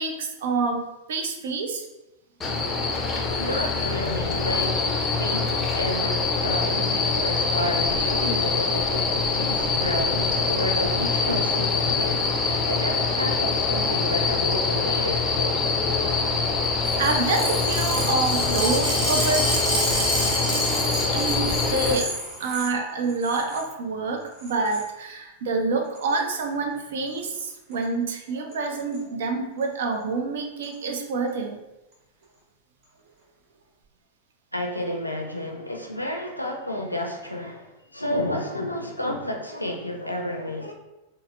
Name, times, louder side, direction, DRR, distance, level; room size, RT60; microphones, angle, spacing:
voice 1, 0.0-1.8 17.0-19.9 21.1-22.1 22.4-31.6, right 3 dB, 60° right, 3 dB, 0.4 m, -27 dB
sound 1, 2.4-22.0, left 4 dB, 20° left, 0.5 m, -24 dB
voice 2, 3.4-15.5 34.5-40.7, left 1 dB, 90° left, 1 dB, 0.4 m, -31 dB
sound 2, 16.8-22.7 23.1-23.6 24.4-24.9 26.0-26.2 27.1-27.4 27.7-27.8 28.1-28.2 28.5-29.0 29.6-29.7 30.6-30.7, right 1 dB, 35° right, 1.0 m, -30 dB
3.9 x 2.0 x 2.5 m, 0.98 s
figure-of-eight pair, 90°, 0 cm